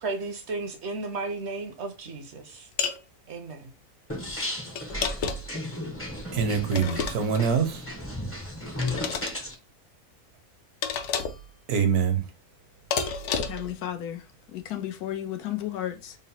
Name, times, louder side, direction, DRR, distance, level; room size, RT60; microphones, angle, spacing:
voice 1, 0.0-2.7 3.3-3.7, right 3 dB, 60° right, 0.7 m, -34 dB
sound 1, 2.8-3.0 4.8-5.6 6.7-7.5 8.8-9.4 10.8-11.5 12.9-13.7, left 6 dB, 65° left, 0.8 m, -30 dB
sound 2, 4.1-9.5, left 1 dB, 20° left, 0.4 m, -35 dB
voice 2, 6.3-7.9 11.7-12.2, right 6 dB, 80° right, 1.3 m, -24 dB
voice 3, 13.5-14.2 14.5-16.2, left 12 dB, 90° left, 1.2 m, -33 dB
3.8 x 2.0 x 4.1 m
omnidirectional pair, 1.6 m